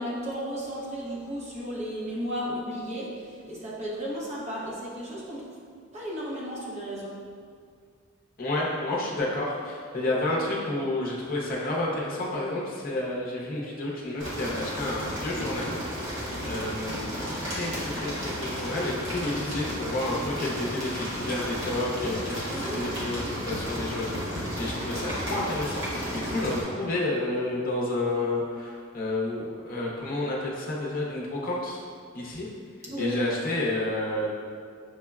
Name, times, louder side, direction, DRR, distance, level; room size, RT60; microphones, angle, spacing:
voice 1, 0.0-5.6 5.9-7.3 22.4-23.0 32.9-33.2, equal, 35° right, -5 dB, 0.7 m, -34 dB
voice 2, 8.4-25.8 26.1-31.8 32.1-32.5 33.0-34.3, left 2 dB, 45° left, -4 dB, 0.6 m, -30 dB
sound 1, 14.2-26.6, equal, 65° right, 1.0 m, -33 dB
6.1 x 2.1 x 2.3 m, 2.1 s
head